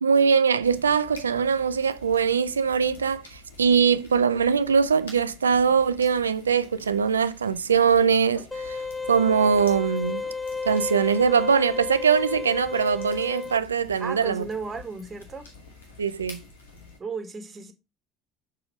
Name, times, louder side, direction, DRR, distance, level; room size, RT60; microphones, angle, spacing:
voice 1, 0.0-8.8 9.1-10.2 10.7-14.5 16.0-16.4, right 6 dB, 85° right, 0.4 m, -22 dB
sound 1, 0.6-17.0, left 3 dB, 80° left, 1.7 m, -48 dB
sound 2, 8.5-13.6, left 4 dB, 15° left, 0.5 m, -32 dB
voice 2, 14.0-15.5 17.0-17.7, right 4 dB, 30° right, 1.8 m, -34 dB
6.2 x 4.3 x 5.0 m
figure-of-eight pair, 60°, 0 cm